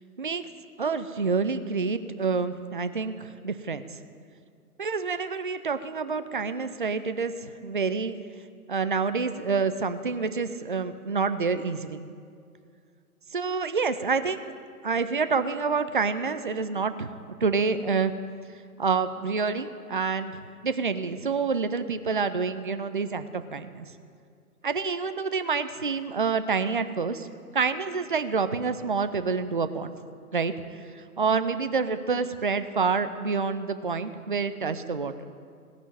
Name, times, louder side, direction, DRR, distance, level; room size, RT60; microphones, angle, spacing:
voice 1, 0.2-0.5 0.8-4.0 4.8-8.2 8.7-12.0 13.3-14.5 14.8-18.1 18.8-23.9 24.6-27.3 27.5-29.9 30.3-35.1, right 5 dB, 35° right, 11 dB, 0.4 m, -28 dB
17.5 x 6.2 x 9.5 m, 2.2 s
figure-of-eight pair, 135°, 46 cm